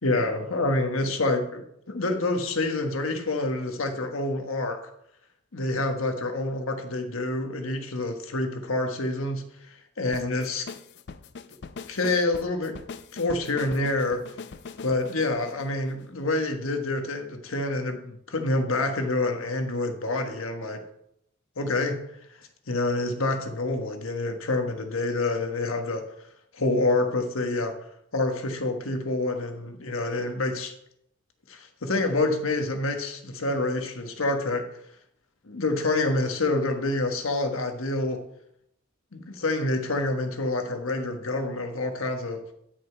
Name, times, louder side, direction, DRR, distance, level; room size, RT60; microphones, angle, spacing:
voice 1, 0.0-4.9 5.5-9.4 10.0-10.7 11.9-12.8 13.1-14.2 14.8-20.8 21.6-22.0 22.7-26.0 26.5-27.7 28.1-30.7 31.5-34.7 35.5-38.2 39.1-42.4, left 2 dB, 80° left, 1.3 m, -27 dB
sound 1, 10.1-16.4, left 4 dB, 55° left, 0.5 m, -42 dB
10.0 x 6.4 x 4.6 m
head